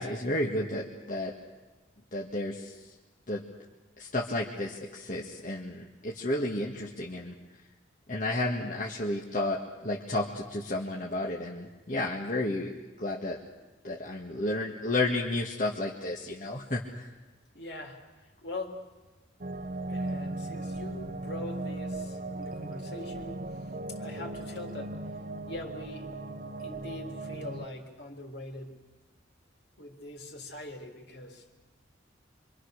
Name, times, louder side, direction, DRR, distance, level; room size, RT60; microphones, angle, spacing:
voice 1, 0.0-1.3 2.1-2.8 3.3-3.4 4.0-7.3 8.1-12.7 13.0-13.4 13.8-17.1, left 2 dB, 40° left, -2 dB, 1.9 m, -32 dB
voice 2, 17.5-18.9 19.9-25.1 25.5-26.1 26.6-28.8 29.8-31.5, left 2 dB, 60° left, 2 dB, 3.6 m, -43 dB
sound 1, 19.4-27.7, right 2 dB, 45° right, 0.9 m, -37 dB
26.5 x 25.5 x 6.6 m, 1.2 s
head